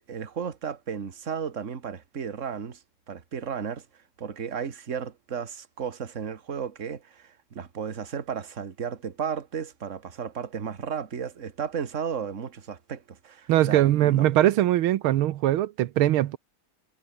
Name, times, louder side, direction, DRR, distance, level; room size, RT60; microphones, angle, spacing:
voice 1, 0.1-2.8 3.1-3.8 4.2-14.3, right 7 dB, 35° right, 1.9 m, -34 dB
voice 2, 13.5-16.4, right 13 dB, 85° right, 1.7 m, -21 dB
omnidirectional pair, 2.3 m